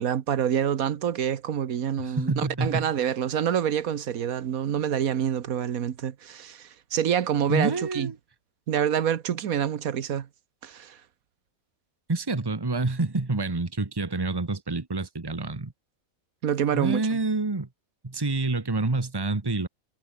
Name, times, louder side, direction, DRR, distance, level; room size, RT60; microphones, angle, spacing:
voice 1, 0.0-8.1 8.7-10.3 10.6-11.0 16.4-17.2, right 9 dB, 90° right, 1.5 m, -27 dB
voice 2, 2.0-2.9 7.5-8.1 12.1-15.7 16.7-17.7 18.0-19.7, right 3 dB, 15° right, 1.4 m, -27 dB
omnidirectional pair, 1.4 m